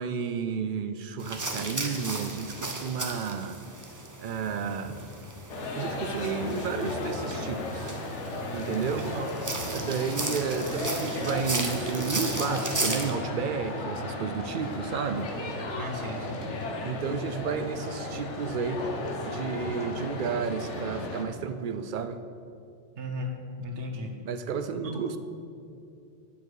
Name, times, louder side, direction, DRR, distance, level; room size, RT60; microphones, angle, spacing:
voice 1, 0.0-3.6 4.2-5.0 5.8-7.9 8.5-9.1 9.7-15.3 16.8-18.9 19.2-22.2 24.2-25.2, right 6 dB, 60° right, 10 dB, 0.6 m, -32 dB
sound 1, 1.2-13.1, right 2 dB, 20° right, 0.7 m, -36 dB
sound 2, 5.5-21.2, left 2 dB, 90° left, 1.3 m, -34 dB
voice 2, 8.9-9.3 15.7-16.4 23.0-24.1 24.8-25.0, left 1 dB, 80° right, 2 dB, 1.4 m, -36 dB
9.7 x 7.1 x 4.7 m, 2.5 s
omnidirectional pair, 1.2 m